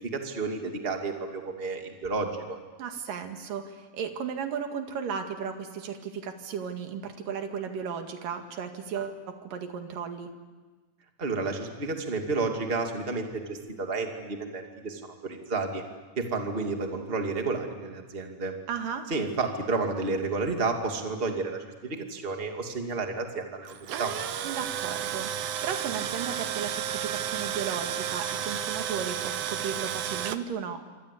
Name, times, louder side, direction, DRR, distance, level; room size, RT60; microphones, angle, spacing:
voice 1, 0.1-2.6 11.2-15.8 16.2-18.5 19.1-24.1, right 3 dB, 20° right, 3 dB, 2.4 m, -31 dB
voice 2, 2.8-10.3 18.7-19.1 24.4-30.8, right 7 dB, 85° right, 5 dB, 3.7 m, -35 dB
Tools, 23.7-30.4, right 9 dB, 65° right, 1.8 m, -32 dB
27.0 x 25.5 x 8.5 m, 1.3 s
omnidirectional pair, 3.7 m